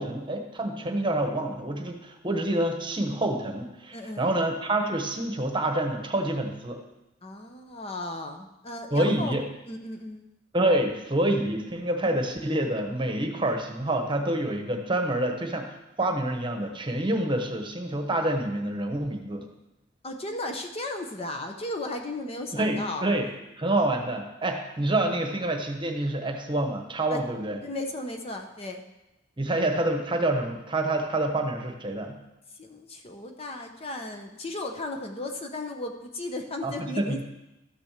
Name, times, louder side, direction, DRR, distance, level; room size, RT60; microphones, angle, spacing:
voice 1, 0.0-6.8 8.9-9.4 10.5-19.4 22.5-23.3 23.6-27.6 29.4-32.1 36.6-37.2, right 1 dB, 25° right, 4 dB, 1.1 m, -27 dB
voice 2, 3.9-4.3 7.2-9.3 9.7-10.2 20.0-23.1 27.1-27.2 27.6-28.8 32.6-37.2, left 2 dB, 30° left, 4 dB, 0.9 m, -35 dB
13.0 x 6.1 x 6.6 m, 0.95 s
head